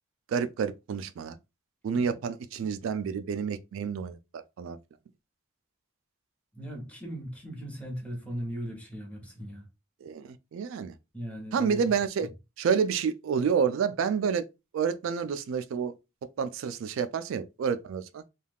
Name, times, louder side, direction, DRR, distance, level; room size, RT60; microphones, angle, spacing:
voice 1, 0.3-1.4 1.8-4.8 10.0-10.9 11.5-12.3 12.6-14.5 14.7-15.9 16.4-18.2, right 6 dB, 65° right, 0.3 m, -29 dB
voice 2, 6.5-9.6 11.1-11.9, equal, 5° left, 0.8 m, -38 dB
2.3 x 2.3 x 3.4 m
head